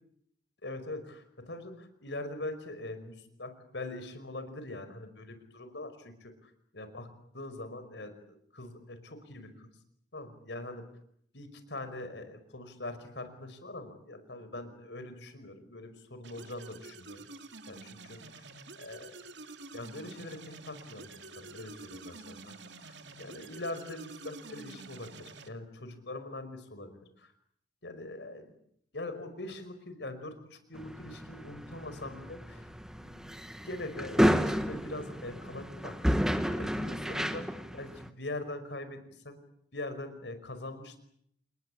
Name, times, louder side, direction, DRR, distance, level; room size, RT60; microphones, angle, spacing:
voice 1, 0.6-7.1 7.3-9.7 10.1-10.8 11.3-17.3 17.7-18.5 18.8-19.1 19.7-22.6 22.8-27.3 27.8-28.5 28.9-32.7 33.0-33.4 33.6-36.2 36.5-39.4 39.7-41.0, left 2 dB, 70° left, 10 dB, 5.2 m, -42 dB
sound 1, 16.2-25.5, right 3 dB, 80° right, 2.5 m, -48 dB
sound 2, 30.7-38.1, equal, 5° right, 1.7 m, -31 dB
29.0 x 20.5 x 8.6 m, 0.70 s
head